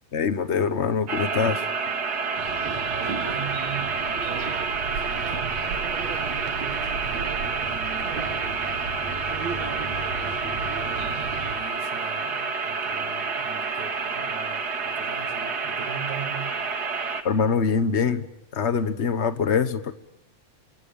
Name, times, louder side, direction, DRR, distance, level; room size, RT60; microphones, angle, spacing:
voice 1, 0.1-1.7 17.2-18.3 18.5-19.9, left 5 dB, 70° left, 10 dB, 0.6 m, -24 dB
sound 1, 1.1-17.2, right 5 dB, 35° right, 2.2 m, -29 dB
sound 2, 2.4-11.5, right 5 dB, 65° right, 3.2 m, -35 dB
voice 2, 2.5-5.7 6.1-8.7 9.5-10.0 10.7-16.6, right 6 dB, 90° right, 5 dB, 4.1 m, -40 dB
29.5 x 25.0 x 5.5 m, 0.86 s
omnidirectional pair, 3.3 m